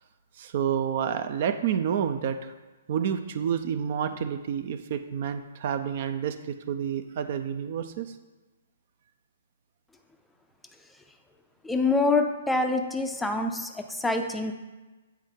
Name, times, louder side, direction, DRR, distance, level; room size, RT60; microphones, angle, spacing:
voice 1, 0.4-2.5 2.9-8.1, right 8 dB, 50° right, 9 dB, 0.4 m, -29 dB
voice 2, 11.6-14.5, left 3 dB, 5° left, 5 dB, 0.4 m, -26 dB
7.4 x 4.3 x 3.6 m, 1.2 s
hypercardioid pair, 125°, 0 cm